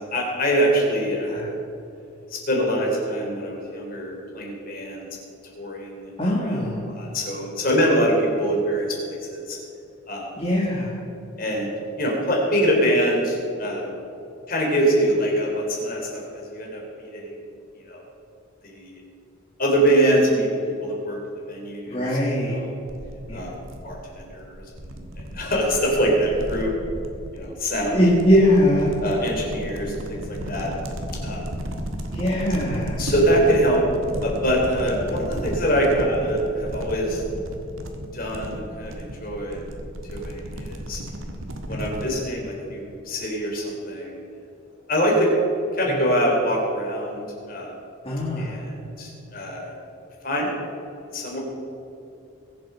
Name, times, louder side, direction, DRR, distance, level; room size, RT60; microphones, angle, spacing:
voice 1, 0.0-1.4 2.3-5.1 5.6-6.1 6.4-9.6 10.1-10.3 11.4-11.7 12.0-13.9 14.5-16.2 16.5-17.3 17.9-18.0 18.6-19.0 19.6-20.5 20.8-22.7 23.3-23.5 23.8-24.6 24.9-26.7 27.3-28.0 29.0-30.7 31.2-31.5 33.0-33.8 34.2-37.2 38.1-39.6 40.1-41.0 41.7-44.2 44.9-45.3 45.7-47.7 48.4-49.7 50.2-50.6 51.1-51.4, equal, 45° left, -1 dB, 3.8 m, -24 dB
voice 2, 6.2-6.8 10.4-11.0 21.9-22.6 23.3-23.5 27.9-28.9 32.1-33.0 41.7-41.8 48.1-48.6, equal, 25° left, -5 dB, 1.9 m, -21 dB
sound 1, 22.9-42.2, equal, 75° right, 1.6 m, -34 dB
22.0 x 7.8 x 5.8 m, 2.8 s
head